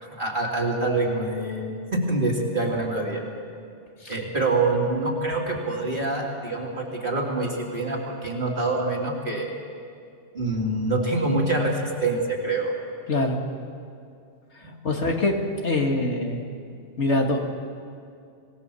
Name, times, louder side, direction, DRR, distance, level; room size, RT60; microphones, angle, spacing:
voice 1, 0.2-3.2 4.1-9.5 10.3-12.7 14.6-14.7, right 2 dB, 45° right, -1 dB, 3.2 m, -25 dB
voice 2, 14.8-15.3 15.6-16.5 17.0-17.4, left 2 dB, 70° left, 2 dB, 2.5 m, -23 dB
26.0 x 18.0 x 7.1 m, 2.4 s
omnidirectional pair, 1.2 m